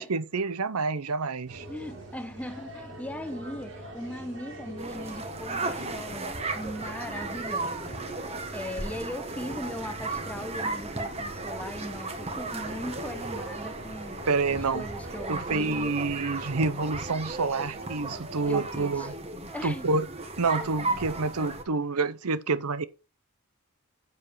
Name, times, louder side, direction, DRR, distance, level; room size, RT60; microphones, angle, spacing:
voice 1, 0.0-1.7 14.3-14.8 15.3-19.1 19.6-20.1 20.4-22.8, right 3 dB, 85° right, 0.8 m, -28 dB
sound 1, 1.5-16.6, right 1 dB, 55° right, 3.2 m, -43 dB
voice 2, 1.7-8.2 8.5-16.0 18.4-19.1 19.4-19.9, left 1 dB, 5° left, 0.8 m, -39 dB
sound 2, 4.8-21.6, right 3 dB, 25° right, 1.4 m, -35 dB
8.2 x 7.2 x 5.7 m
head